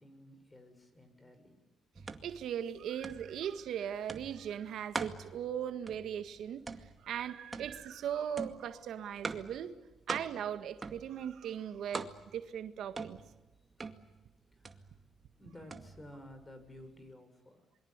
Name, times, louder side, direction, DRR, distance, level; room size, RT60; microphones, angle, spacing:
voice 1, 0.0-1.6 13.8-14.0 14.5-14.9 15.4-17.6, left 1 dB, 20° left, 8 dB, 6.8 m, -54 dB
sound 1, 2.0-17.1, right 4 dB, 30° right, 2.1 m, -45 dB
voice 2, 2.2-9.7 10.1-12.1 12.3-13.2, right 9 dB, 75° right, 10 dB, 1.6 m, -38 dB
27.0 x 23.0 x 8.2 m, 1.1 s
cardioid pair, 90°, 0 cm